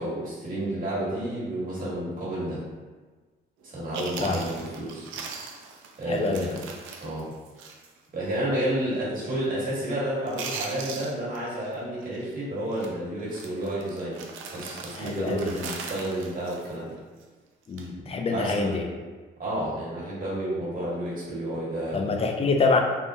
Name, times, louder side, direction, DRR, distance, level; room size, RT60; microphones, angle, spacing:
voice 1, 0.0-2.6 3.6-5.1 6.0-6.6 7.0-7.3 8.1-14.2 14.5-16.9 18.3-18.8 19.4-22.0, right 1 dB, 45° right, -8 dB, 1.4 m, -30 dB
Chewing mastication, 3.6-3.7 3.9-8.0 8.3-8.4 8.9-9.2 9.5-9.9 10.2-11.7 12.0-12.3 12.7-12.9 13.3-17.2 17.6-17.9, right 5 dB, 80° right, 0.4 m, -40 dB
voice 2, 6.1-6.6 14.9-15.5 17.7-18.9 21.9-22.8, left 4 dB, 30° left, 3 dB, 0.4 m, -26 dB
3.5 x 2.1 x 2.6 m, 1.3 s
cardioid pair, 90°, 20 cm